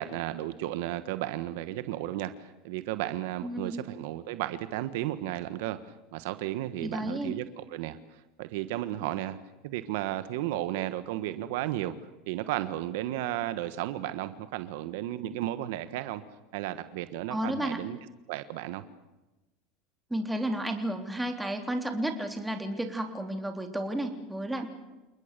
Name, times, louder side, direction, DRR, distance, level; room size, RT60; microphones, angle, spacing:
voice 1, 0.0-8.0 8.4-9.4 9.6-11.9 12.3-16.2 16.5-18.0 18.3-18.8, right 14 dB, 75° right, 12 dB, 1.4 m, -34 dB
voice 2, 3.4-3.8 6.8-7.3 17.3-17.8 20.1-24.7, right 1 dB, 5° right, 4 dB, 3.5 m, -32 dB
29.0 x 20.0 x 6.8 m, 1.0 s
supercardioid pair, 120°, 0 cm